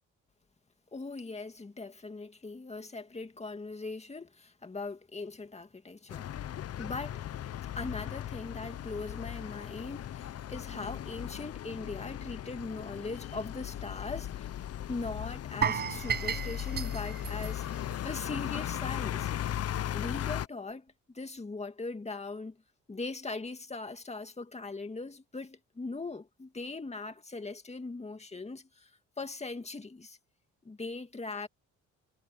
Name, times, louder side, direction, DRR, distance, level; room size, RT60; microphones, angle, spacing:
voice 1, 0.9-6.3 6.8-7.2 7.6-14.5 14.9-19.3 19.9-22.6 22.9-28.9 29.2-30.2 30.6-31.5, left 3 dB, 20° left, 2.2 m, -40 dB
sound 1, 6.1-20.5, left 11 dB, 55° left, 0.8 m, -37 dB
sound 2, 15.6-18.6 18.9-19.1 19.5-19.6, right 8 dB, 35° right, 0.5 m, -34 dB
cardioid pair, 90°, 30 cm